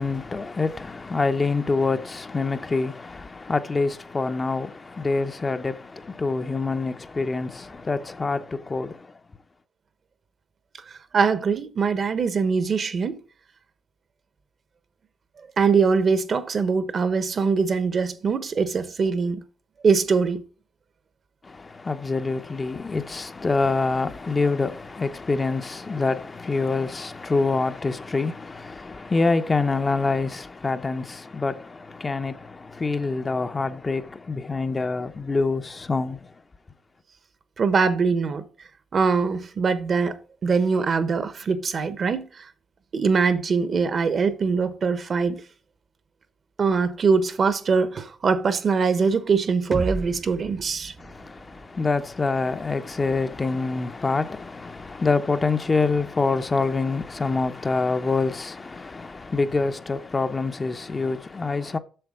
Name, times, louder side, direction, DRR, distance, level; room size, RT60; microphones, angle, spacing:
voice 1, 0.0-9.1 21.4-36.3 51.0-61.8, left 3 dB, 25° left, 0.7 m, -26 dB
voice 2, 11.1-13.2 15.6-19.4 19.8-20.4 37.6-38.5 38.9-40.2 40.4-42.3 42.9-45.4 46.6-50.9, right 5 dB, 45° right, 1.0 m, -22 dB
sound 1, 49.7-53.6, right 3 dB, 25° right, 0.5 m, -36 dB
7.9 x 6.6 x 4.9 m
cardioid pair, 90°, 0 cm